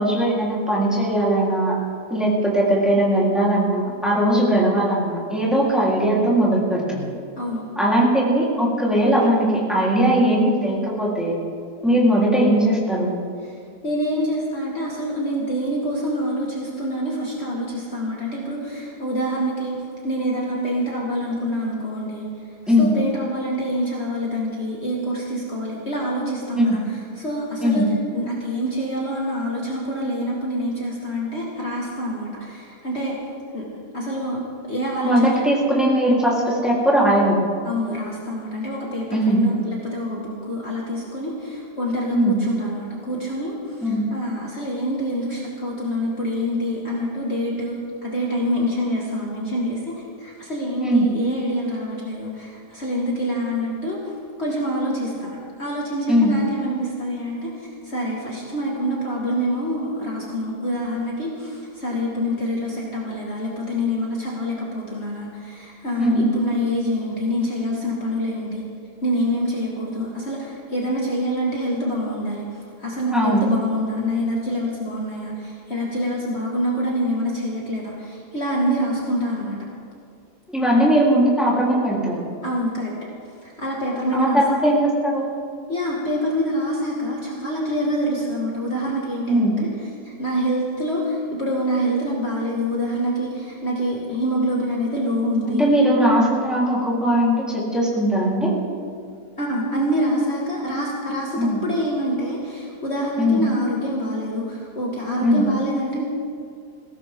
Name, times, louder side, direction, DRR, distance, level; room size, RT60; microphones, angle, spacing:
voice 1, 0.0-1.8 2.1-7.0 7.8-11.3 11.8-13.1 22.7-22.9 26.5-26.8 27.6-27.9 35.0-37.4 39.1-39.4 42.1-42.4 43.8-44.1 50.8-51.1 56.1-56.4 66.0-66.3 73.1-73.4 80.5-82.2 84.1-85.3 89.3-89.6 95.5-98.5 101.4-101.6 103.2-103.4 105.2-105.4, equal, ahead, -5 dB, 3.9 m, -19 dB
voice 2, 13.8-22.3 22.7-33.2 33.5-34.4 34.7-35.5 37.6-49.9 50.2-68.6 69.0-79.6 82.4-82.9 83.4-84.4 85.7-89.7 90.0-95.6 99.4-106.1, equal, 40° left, -4 dB, 2.4 m, -26 dB
21.5 x 17.0 x 3.8 m, 2.4 s
omnidirectional pair, 1.7 m